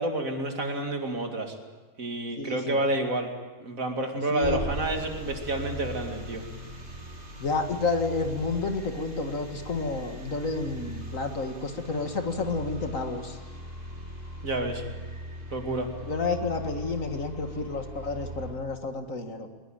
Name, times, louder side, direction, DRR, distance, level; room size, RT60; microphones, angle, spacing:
voice 1, 0.0-1.6 2.0-3.3 3.6-6.4 14.4-14.8 15.5-15.9, right 2 dB, 60° right, 4 dB, 2.8 m, -29 dB
voice 2, 2.4-2.8 4.3-4.6 7.4-13.4 16.1-19.5, left 3 dB, 60° left, 6 dB, 2.2 m, -30 dB
sound 1, 4.4-18.5, equal, 35° right, 3.7 m, -39 dB
21.0 x 20.5 x 8.9 m, 1.3 s
omnidirectional pair, 1.6 m